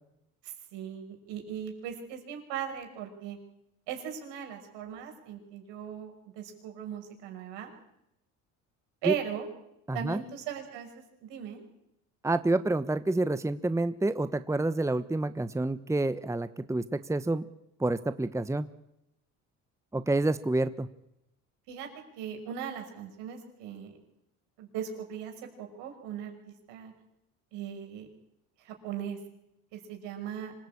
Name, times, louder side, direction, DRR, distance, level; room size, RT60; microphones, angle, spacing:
voice 1, 0.4-3.4 3.9-7.7 9.0-9.5 9.9-11.6 21.7-21.9 22.2-23.9 24.6-26.3 26.7-26.9 27.5-28.1 28.6-29.2 29.7-30.5, right 9 dB, 75° right, 3 dB, 6.0 m, -38 dB
voice 2, 9.9-10.2 12.2-17.4 17.8-18.7 19.9-20.9, right 2 dB, 5° right, 12 dB, 1.2 m, -28 dB
26.0 x 16.5 x 8.7 m, 0.83 s
hypercardioid pair, 70°, 42 cm